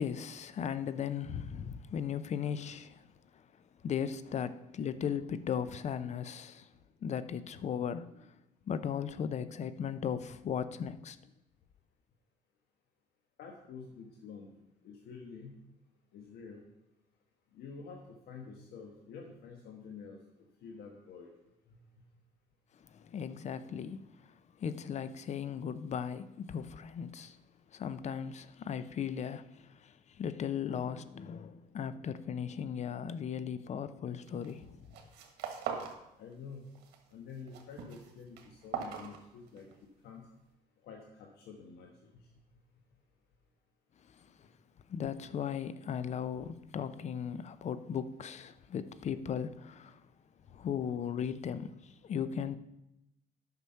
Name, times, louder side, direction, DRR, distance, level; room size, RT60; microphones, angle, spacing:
voice 1, 0.0-3.0 3.8-6.7 7.0-8.3 8.7-11.2 22.9-24.1 24.6-27.4 27.7-34.9 44.9-50.0 50.5-52.6, left 8 dB, 40° left, 0.6 m, -37 dB
voice 2, 13.4-14.5 14.8-15.6 16.1-16.6 17.5-20.2 20.6-21.3 21.7-21.8 36.2-36.6 37.1-40.2 40.8-42.3, left 5 dB, 70° left, 1.3 m, -48 dB
sound 1, 34.3-34.6 34.9-36.0 36.3-37.0 37.3-39.8, right 7 dB, 85° right, 1.5 m, -41 dB
9.3 x 6.1 x 5.6 m
cardioid pair, 110°, 17 cm